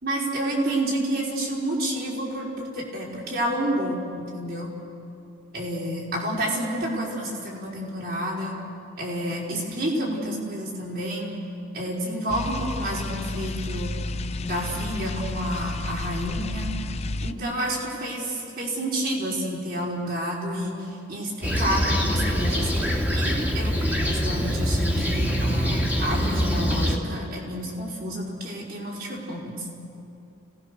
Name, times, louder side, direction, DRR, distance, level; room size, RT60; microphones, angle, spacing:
voice 1, 0.0-4.7 5.5-8.5 9.0-11.4 11.7-14.0 14.4-16.7 17.2-18.3 18.6-22.7 23.1-23.8 24.0-29.6, right 1 dB, 45° right, -3 dB, 4.8 m, -29 dB
sound 1, 12.3-17.3, left 2 dB, 30° left, 0.5 m, -31 dB
Fixed-wing aircraft airplane, 21.4-27.0, equal, 10° right, 2.1 m, -24 dB
30.0 x 19.0 x 6.8 m, 2.7 s
head